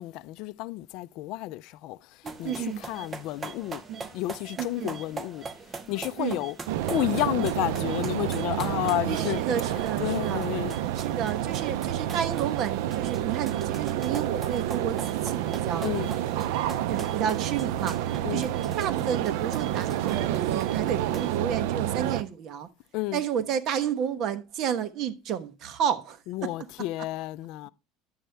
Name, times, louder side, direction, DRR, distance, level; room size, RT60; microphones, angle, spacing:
voice 1, 0.0-2.0 2.4-2.5 2.9-3.8 4.1-5.5 5.9-6.5 6.9-9.4 10.0-10.7 15.8-16.1 18.2-18.5 22.9-23.2 26.3-27.7, left 17 dB, 60° left, 0.4 m, -31 dB
sound 1, 2.2-21.4, right 4 dB, 20° right, 0.8 m, -42 dB
voice 2, 2.4-2.8 3.9-4.1 4.6-5.0 6.2-6.4 9.0-10.5 10.9-16.6 16.9-17.9 18.3-22.7 23.1-26.7, right 8 dB, 45° right, 1.1 m, -31 dB
sound 2, 6.7-22.2, right 12 dB, 80° right, 0.5 m, -29 dB
11.0 x 7.7 x 3.4 m
cardioid pair, 150°, 0 cm